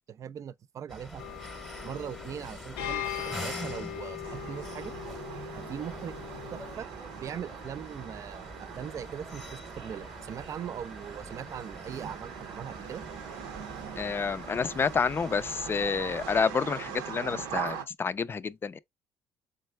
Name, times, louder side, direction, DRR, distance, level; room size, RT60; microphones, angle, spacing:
voice 1, 0.1-1.2 1.8-4.9 5.6-6.9 7.1-13.0, right 8 dB, 50° right, 0.4 m, -40 dB
sound 1, 0.9-16.4, equal, ahead, 0.9 m, -45 dB
sound 2, 1.2-6.8, left 12 dB, 90° left, 0.5 m, -40 dB
sound 3, 4.2-17.8, right 8 dB, 85° right, 0.8 m, -41 dB
voice 2, 14.0-18.8, left 5 dB, 30° left, 0.4 m, -29 dB
3.9 x 3.3 x 3.2 m
supercardioid pair, 75°, 7 cm